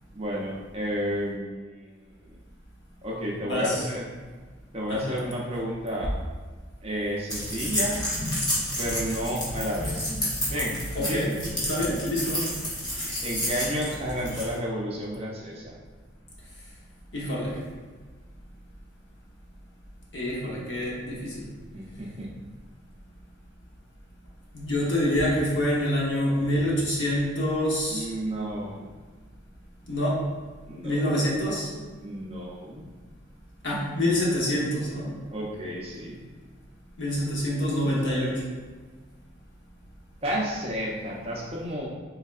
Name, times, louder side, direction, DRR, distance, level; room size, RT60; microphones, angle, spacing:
voice 1, 0.1-2.4 3.0-4.1 4.7-6.1 6.8-8.0 8.8-10.1 10.5-10.8 11.1-11.4 13.2-15.7 21.7-22.3 27.9-28.9 30.7-31.3 32.0-32.9 35.3-36.2 40.2-41.9, equal, 30° right, -3 dB, 0.5 m, -31 dB
voice 2, 3.5-3.8 4.9-5.2 10.9-11.3 11.6-12.5 17.1-17.6 20.1-21.5 24.5-28.1 29.9-30.2 30.8-31.7 33.6-35.2 37.0-38.3, left 1 dB, 70° left, -5 dB, 0.9 m, -26 dB
sound 1, 7.3-14.5, equal, 20° left, 0.7 m, -30 dB
3.5 x 3.2 x 2.3 m, 1.4 s
head